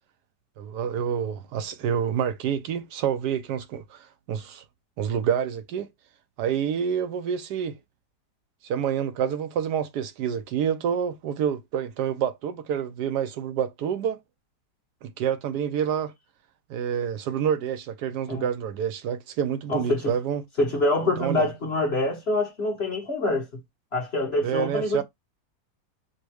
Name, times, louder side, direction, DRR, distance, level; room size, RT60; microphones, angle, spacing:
voice 1, 0.6-4.6 5.0-5.9 6.4-7.8 8.6-14.2 15.0-16.1 16.7-20.4 21.2-21.5 24.4-25.0, right 8 dB, 75° right, 1.1 m, -28 dB
voice 2, 19.7-20.1 20.6-23.5 23.9-25.0, left 2 dB, 40° left, 1.3 m, -25 dB
5.1 x 2.1 x 4.7 m
omnidirectional pair, 1.9 m